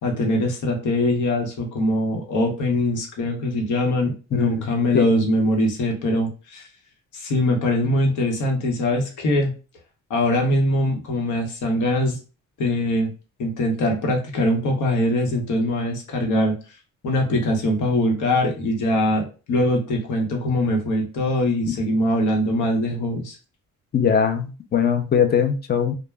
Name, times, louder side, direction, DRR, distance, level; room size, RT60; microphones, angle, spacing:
voice 1, 0.0-6.7 7.1-9.5 10.1-12.2 12.6-13.1 13.4-16.5 17.0-23.4, left 1 dB, 75° left, 1 dB, 0.9 m, -22 dB
voice 2, 23.9-25.9, left 7 dB, 35° left, 6 dB, 0.5 m, -20 dB
2.1 x 2.0 x 3.3 m, 0.34 s
cardioid pair, 90°, 30 cm